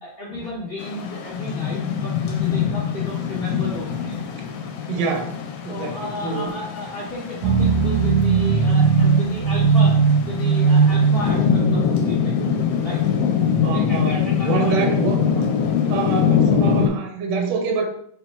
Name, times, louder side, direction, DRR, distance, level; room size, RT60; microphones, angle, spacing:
voice 1, 0.0-4.3 5.0-5.1 5.7-12.4 12.8-13.0 13.7-15.0, left 1 dB, 60° left, -6 dB, 0.6 m, -33 dB
sound 1, 0.8-16.9, left 7 dB, 80° left, 1.3 m, -23 dB
voice 2, 4.9-5.3 5.6-6.5 13.6-14.2 14.4-15.5 15.9-17.8, right 5 dB, 70° right, 3 dB, 1.1 m, -25 dB
sound 2, 7.4-12.0, right 5 dB, 85° right, 1.6 m, -18 dB
3.9 x 2.2 x 4.1 m, 0.67 s
omnidirectional pair, 2.2 m